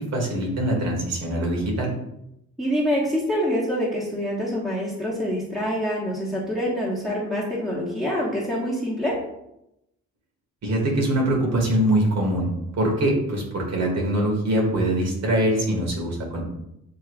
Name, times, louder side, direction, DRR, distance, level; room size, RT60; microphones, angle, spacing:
voice 1, 0.0-1.9 10.6-12.5 12.8-16.4, right 1 dB, 60° right, -1 dB, 1.7 m, -23 dB
voice 2, 2.6-9.2, equal, ahead, -6 dB, 1.3 m, -26 dB
7.3 x 3.1 x 2.3 m, 0.84 s
cardioid pair, 90°, 30 cm